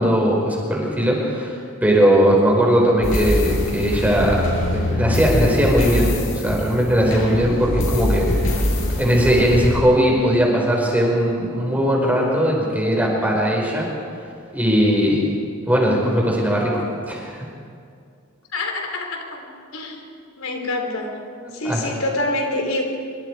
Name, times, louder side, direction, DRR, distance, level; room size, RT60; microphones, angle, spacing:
voice 1, 0.0-1.5 1.8-4.4 4.7-8.6 8.9-13.9 14.5-15.3 15.7-16.8 17.1-17.4 21.4-21.8, equal, 10° right, -2 dB, 5.1 m, -19 dB
sound 1, 3.0-9.8, left 1 dB, 65° left, 6.9 m, -23 dB
voice 2, 18.5-19.5 19.7-20.1 20.4-21.2 21.5-22.8, left 2 dB, 90° left, 2 dB, 3.7 m, -26 dB
26.0 x 25.0 x 4.8 m, 2.3 s
head